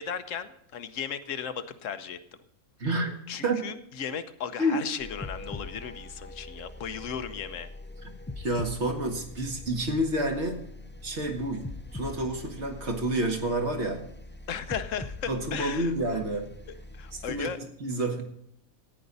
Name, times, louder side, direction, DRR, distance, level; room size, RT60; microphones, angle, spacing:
voice 1, 0.0-2.2 3.3-7.7 14.5-15.9 16.7-17.6, left 7 dB, 65° left, 11 dB, 1.2 m, -36 dB
voice 2, 2.8-3.2 3.4-3.6 4.6-4.8 8.0-10.6 11.0-14.0 15.3-16.5 17.1-17.5 17.8-18.2, right 1 dB, 50° right, 3 dB, 2.1 m, -29 dB
sound 1, 5.0-17.4, left 2 dB, 15° left, 0.4 m, -43 dB
14.5 x 10.0 x 4.0 m, 0.71 s
omnidirectional pair, 1.5 m